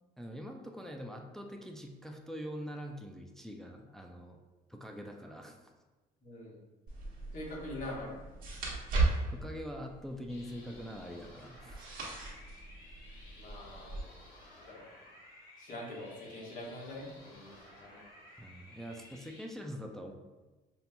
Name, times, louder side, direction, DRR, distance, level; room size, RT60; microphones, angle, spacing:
voice 1, 0.2-4.4 4.7-5.6 9.3-11.8 18.4-20.1, equal, 5° left, 2 dB, 0.3 m, -44 dB
voice 2, 6.2-6.6 7.3-8.2 13.4-14.1 14.6-14.8 15.6-18.0, left 1 dB, 50° left, -4 dB, 1.2 m, -44 dB
sound 1, 6.9-14.0, right 2 dB, 60° right, 1.2 m, -37 dB
sound 2, 10.3-19.4, left 1 dB, 70° left, 1.3 m, -56 dB
5.5 x 2.7 x 2.2 m, 1.2 s
cardioid pair, 110°, 17 cm